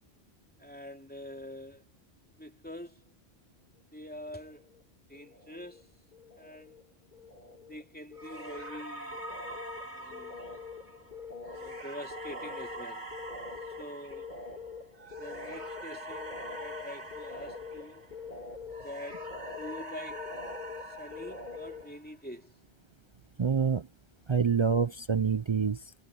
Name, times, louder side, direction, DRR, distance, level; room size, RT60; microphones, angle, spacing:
voice 1, 0.6-1.8 2.2-3.1 3.9-4.7 5.1-5.9 6.4-6.8 7.7-9.2 9.8-10.4 11.5-13.1 13.8-14.3 15.2-18.0 18.8-20.4 20.9-22.5, equal, 10° left, 3.2 m, -45 dB
sound 1, 4.3-4.8 5.1-5.9 6.1-21.9, left 4 dB, 40° left, 2.9 m, -45 dB
sound 2, 8.2-18.4 18.7-22.1, right 1 dB, 85° right, 4.1 m, -44 dB
voice 2, 23.4-23.9 24.3-25.8, right 6 dB, 50° right, 0.3 m, -26 dB
omnidirectional pair, 1.1 m